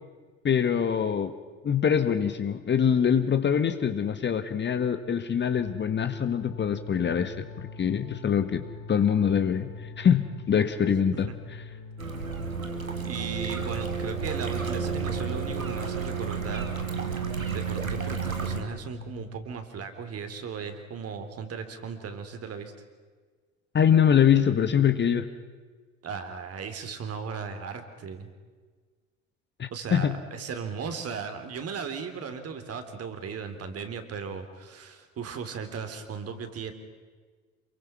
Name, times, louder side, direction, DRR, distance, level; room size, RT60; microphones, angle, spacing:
voice 1, 0.4-1.3 1.6-9.7 10.0-11.3 23.7-25.3 29.6-30.2, left 8 dB, 25° left, 9 dB, 1.5 m, -24 dB
sound 1, 5.5-19.4, left 4 dB, 40° left, 3.8 m, -43 dB
sound 2, 12.0-18.6, right 6 dB, 90° right, 2.1 m, -31 dB
voice 2, 13.0-16.7 17.5-22.7 26.0-28.3 29.7-36.7, right 6 dB, 35° right, 7 dB, 3.4 m, -37 dB
28.0 x 23.0 x 6.0 m, 1.5 s
figure-of-eight pair, 65°, 40 cm